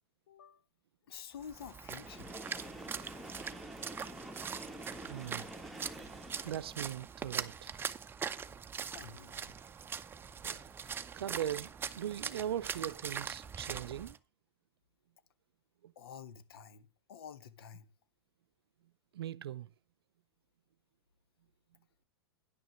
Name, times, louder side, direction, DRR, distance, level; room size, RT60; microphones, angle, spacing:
voice 1, 0.3-0.6 1.1-2.3 8.9-9.6 16.0-17.9, left 7 dB, 75° left, 1.2 m, -49 dB
Splash splatter, 1.4-14.2, right 7 dB, 15° right, 0.7 m, -42 dB
Train, 1.9-7.0, right 1 dB, ahead, 1.5 m, -48 dB
voice 2, 5.0-5.7 6.4-7.7 10.4-10.7 11.1-14.2 15.8-15.9 19.1-19.7, right 11 dB, 80° right, 0.5 m, -40 dB
10.5 x 6.4 x 6.1 m
hypercardioid pair, 115°, 13 cm